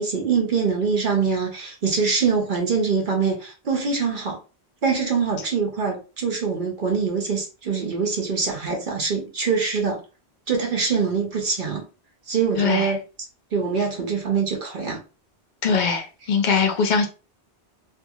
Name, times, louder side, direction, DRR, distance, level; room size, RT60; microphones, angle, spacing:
voice 1, 0.0-4.4 4.8-10.0 10.5-11.8 12.3-13.0 13.5-15.0, right 5 dB, 55° right, 0.8 m, -24 dB
voice 2, 12.6-12.9 15.6-17.1, left 5 dB, 50° left, 0.7 m, -21 dB
2.6 x 2.5 x 2.6 m
omnidirectional pair, 1.1 m